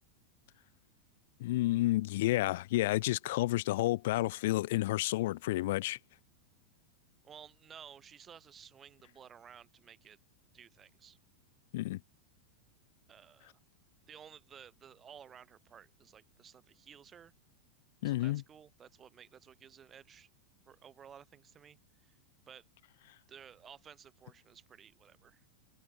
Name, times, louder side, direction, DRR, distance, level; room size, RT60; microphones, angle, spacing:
voice 1, 1.4-6.0 11.7-12.0 18.0-18.4, left 17 dB, 55° left, 0.7 m, -30 dB
voice 2, 7.2-10.2 10.5-11.2 13.1-13.6 14.1-17.3 18.0-20.3 20.7-21.8 22.1-22.2 22.5-22.7 23.3-25.4, right 8 dB, 25° right, 6.2 m, -55 dB
figure-of-eight pair, 90°, 0 cm